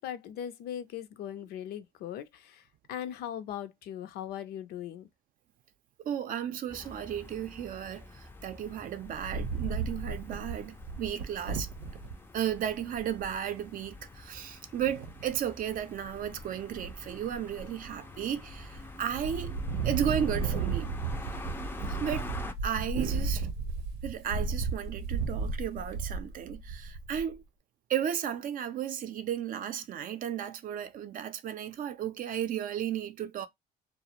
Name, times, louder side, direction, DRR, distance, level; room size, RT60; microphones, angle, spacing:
voice 1, 0.0-5.1, left 10 dB, 70° left, 0.5 m, -39 dB
voice 2, 6.0-11.7 12.3-19.5 19.8-20.9 21.9-22.3 22.6-23.5 24.0-27.4 27.9-33.5, right 9 dB, 55° right, 0.5 m, -34 dB
sound 1, 6.7-22.5, left 2 dB, 15° left, 0.4 m, -46 dB
Wind, 9.0-12.1 12.7-12.8 13.0-13.3 14.8-15.4 15.9-16.4 16.7-17.9 18.4-18.8 19.1-27.3, right 4 dB, 90° right, 0.7 m, -34 dB
2.4 x 2.0 x 2.8 m
cardioid pair, 110°, 17 cm